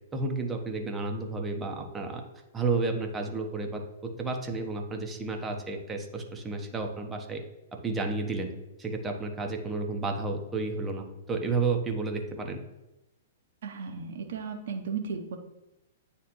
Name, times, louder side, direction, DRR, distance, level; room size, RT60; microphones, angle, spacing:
voice 1, 0.1-2.2 2.5-3.8 4.2-7.4 7.8-8.5 8.8-12.6, right 3 dB, 15° right, 2 dB, 0.9 m, -31 dB
voice 2, 13.6-15.4, right 5 dB, 55° right, 4 dB, 0.8 m, -35 dB
9.2 x 3.3 x 3.1 m, 0.95 s
figure-of-eight pair, 110°, 0 cm